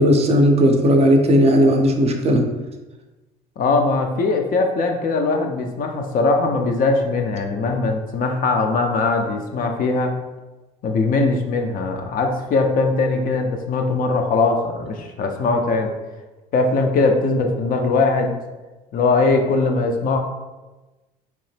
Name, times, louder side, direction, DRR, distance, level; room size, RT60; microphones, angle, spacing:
voice 1, 0.0-2.5, equal, 30° right, 3 dB, 0.5 m, -15 dB
voice 2, 3.6-10.1 10.8-15.9 16.5-18.4 18.9-20.2, left 3 dB, 45° left, 4 dB, 0.5 m, -20 dB
2.9 x 2.0 x 3.2 m, 1.1 s
hypercardioid pair, 70°, 20 cm